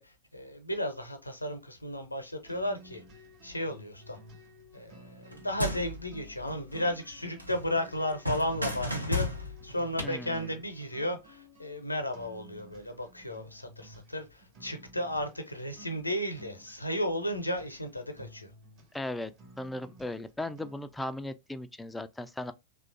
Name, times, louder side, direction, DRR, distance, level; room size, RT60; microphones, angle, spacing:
voice 1, 0.0-3.0 3.4-4.2 4.7-18.5, left 1 dB, 85° left, 0.6 m, -34 dB
sound 1, 2.4-21.0, equal, 40° right, 1.2 m, -54 dB
sound 2, 5.3-7.1 7.4-10.1, left 1 dB, 90° right, 0.5 m, -35 dB
voice 2, 10.0-10.5 18.9-19.3 19.6-22.5, left 1 dB, 5° left, 0.3 m, -37 dB
3.1 x 2.3 x 2.4 m
figure-of-eight pair, 90°, 0 cm